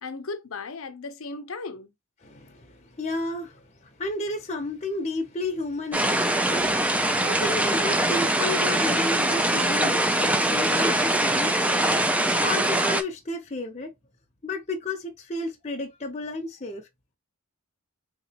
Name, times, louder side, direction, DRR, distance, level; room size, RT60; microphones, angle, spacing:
voice 1, 0.0-1.9, left 3 dB, 65° left, 0.7 m, -36 dB
voice 2, 2.2-11.9 12.4-13.9 14.4-16.9, left 2 dB, 30° left, 0.7 m, -32 dB
sound 1, 5.9-13.0, right 1 dB, 5° right, 0.3 m, -23 dB
3.7 x 2.9 x 2.8 m
head